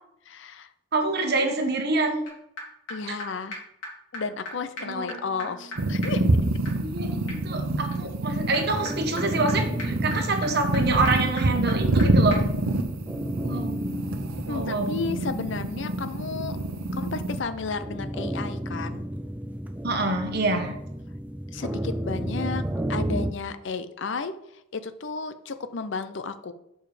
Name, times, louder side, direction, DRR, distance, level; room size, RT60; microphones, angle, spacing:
voice 1, 0.3-0.7 2.9-3.6 4.1-6.3 14.5-16.5 16.9-19.0 21.5-22.6 22.9-26.5, left 4 dB, 60° left, 11 dB, 0.5 m, -33 dB
voice 2, 0.9-2.2 3.1-3.2 4.8-5.2 6.8-12.4 13.4-13.8 14.5-14.9 19.8-20.8, right 3 dB, 50° right, 5 dB, 1.1 m, -26 dB
sound 1, 2.3-2.4 2.6-2.7 2.9-3.0 3.2-3.3 3.5-3.6 3.8-3.9 4.1-4.2 4.4-4.5 4.8-12.0 12.3-12.4, left 1 dB, 85° left, 2.7 m, -41 dB
sound 2, 5.8-23.3, equal, 5° right, 0.4 m, -34 dB
sound 3, 5.8-17.4, right 2 dB, 80° right, 0.8 m, -26 dB
6.9 x 5.4 x 4.9 m, 0.79 s
head